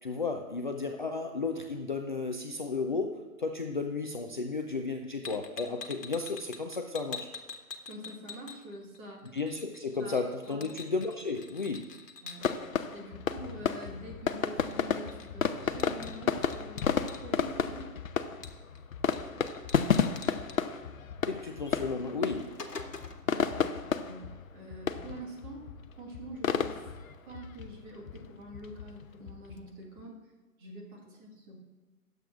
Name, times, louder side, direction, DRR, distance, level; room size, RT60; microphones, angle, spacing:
voice 1, 0.0-7.3 9.3-11.9 21.3-22.6, left 4 dB, 35° left, 4 dB, 0.4 m, -33 dB
sound 1, 5.2-9.0 9.3-12.5 14.7-14.8 15.1-17.2 18.4-18.8 19.1-19.2 19.5-20.6 21.7-21.8 22.1-23.3, left 4 dB, 85° left, 1.3 m, -45 dB
voice 2, 7.9-9.4 10.0-10.2 10.5-10.7 12.2-12.5 12.9-17.9 23.3-23.7 24.0-25.7 26.0-26.8 27.2-30.3 30.6-31.6, right 1 dB, 20° right, -2 dB, 1.5 m, -46 dB
sound 2, 12.4-30.0, left 7 dB, 60° left, 0.7 m, -33 dB
19.5 x 7.8 x 2.5 m, 1.4 s
figure-of-eight pair, 140°, 46 cm